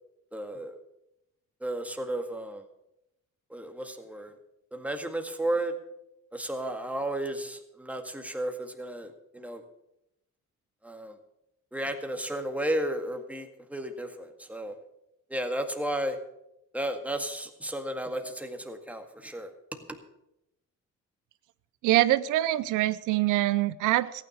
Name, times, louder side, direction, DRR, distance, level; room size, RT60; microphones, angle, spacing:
voice 1, 0.3-0.8 1.6-2.6 3.5-4.3 4.7-5.7 6.3-9.6 10.8-11.1 11.7-14.7 15.3-16.2 16.7-19.5 19.9-20.0, right 1 dB, 5° right, 5 dB, 1.9 m, -33 dB
voice 2, 21.8-24.2, right 15 dB, 90° right, 15 dB, 0.6 m, -24 dB
14.5 x 9.7 x 6.5 m, 0.84 s
cardioid pair, 90°, 30 cm